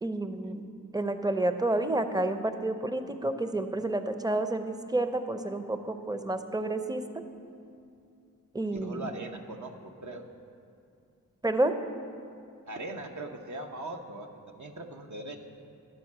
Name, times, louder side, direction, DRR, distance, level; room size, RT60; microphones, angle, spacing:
voice 1, 0.0-0.6 0.9-7.1 8.5-9.0 11.4-11.7, right 2 dB, 10° right, 8 dB, 0.6 m, -29 dB
voice 2, 8.7-10.3 12.7-15.4, right 2 dB, 60° right, 4 dB, 0.9 m, -40 dB
11.0 x 4.5 x 7.3 m, 2.5 s
cardioid pair, 40°, 33 cm